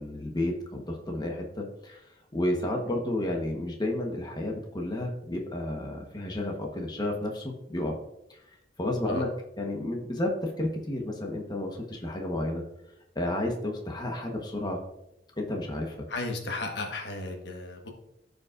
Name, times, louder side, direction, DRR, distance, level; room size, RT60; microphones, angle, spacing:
voice 1, 0.0-2.0 2.3-8.0 8.3-8.4 8.8-9.3 9.6-12.6 13.1-14.8 15.4-16.1, left 1 dB, 25° left, 1 dB, 1.1 m, -31 dB
voice 2, 16.1-17.9, left 2 dB, 75° left, 3 dB, 1.3 m, -34 dB
13.5 x 5.2 x 2.5 m, 0.84 s
head